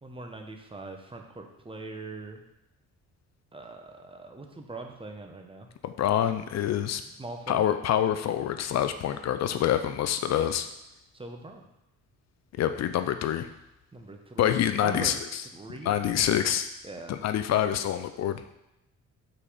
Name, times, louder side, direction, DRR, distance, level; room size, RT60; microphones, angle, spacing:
voice 1, 0.0-2.4 3.5-5.7 7.2-7.7 11.1-11.6 13.9-14.5 14.8-15.2 15.5-16.1 16.8-17.1, right 3 dB, 20° right, 4 dB, 0.9 m, -41 dB
voice 2, 5.8-7.0 7.5-10.7 12.6-13.5 14.4-15.4 15.8-16.7 17.1-18.4, left 10 dB, 60° left, 10 dB, 0.5 m, -26 dB
5.5 x 4.1 x 4.9 m, 0.87 s
cardioid pair, 90°, 30 cm